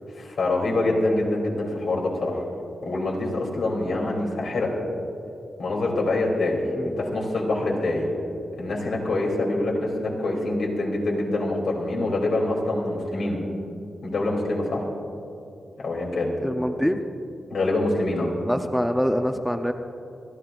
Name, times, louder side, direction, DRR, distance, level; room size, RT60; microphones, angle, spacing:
voice 1, 0.1-2.4 2.8-4.7 5.6-8.1 8.6-13.4 14.0-14.8 15.8-16.3 17.5-18.3, left 2 dB, 80° left, -2 dB, 3.1 m, -25 dB
voice 2, 6.8-7.1 16.4-17.0 18.5-19.7, equal, 5° left, 5 dB, 0.6 m, -25 dB
28.0 x 12.0 x 2.6 m, 2.7 s
wide cardioid pair, 95°, 0 cm